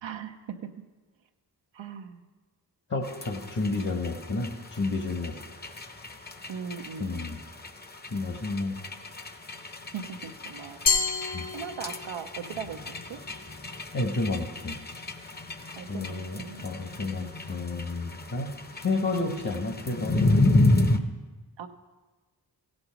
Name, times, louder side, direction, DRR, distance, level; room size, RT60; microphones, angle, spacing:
voice 1, 0.0-0.6 1.7-2.2 6.5-7.4 9.9-10.8 11.5-12.8 13.1-13.2 15.8-16.6 19.3-19.5 21.6-21.7, right 7 dB, 90° right, 5 dB, 0.7 m, -39 dB
voice 2, 2.9-5.3 7.0-7.4 8.1-8.8 11.3-11.5 13.9-14.8 15.9-18.5 18.8-20.3, left 3 dB, 45° left, 4 dB, 1.2 m, -30 dB
sound 1, 3.0-21.0, left 2 dB, 20° left, 0.7 m, -31 dB
Glass, 10.9-12.3, left 5 dB, 75° left, 1.7 m, -28 dB
16.0 x 5.3 x 5.8 m, 1.3 s
cardioid pair, 55°, 43 cm